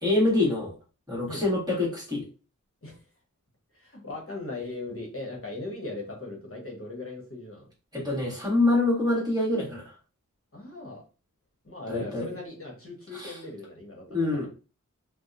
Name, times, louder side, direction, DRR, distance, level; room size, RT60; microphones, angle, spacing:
voice 1, 0.0-0.7 1.1-2.2 7.9-9.9 11.9-12.3 13.1-13.4 14.1-14.5, left 2 dB, 10° right, -4 dB, 1.4 m, -25 dB
voice 2, 3.7-7.7 10.5-11.0 11.6-14.5, left 2 dB, 45° left, -1 dB, 1.1 m, -39 dB
2.7 x 2.1 x 2.5 m, 0.34 s
wide cardioid pair, 45°, 32 cm